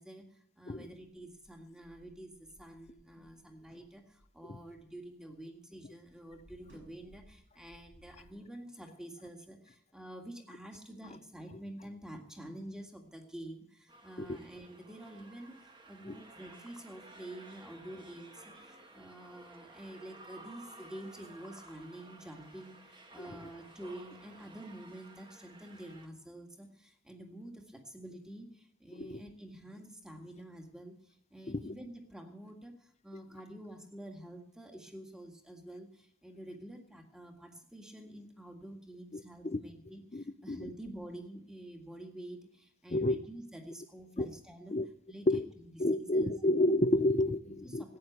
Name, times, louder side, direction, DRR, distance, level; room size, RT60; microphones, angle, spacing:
voice 1, 0.0-44.8 45.1-46.3 47.5-48.0, right 1 dB, 5° right, 3 dB, 1.9 m, -48 dB
sound 1, 1.1-5.5 5.7-8.3, equal, 70° right, 5.5 m, -62 dB
sound 2, 13.9-26.1, right 2 dB, 25° right, 1.4 m, -55 dB
voice 2, 39.1-39.6 40.1-40.7 42.9-43.2 44.2-44.3 44.7-44.9 45.3-45.5 45.8-47.8, left 1 dB, 30° left, 14 dB, 0.6 m, -30 dB
15.0 x 9.4 x 8.1 m, 0.66 s
head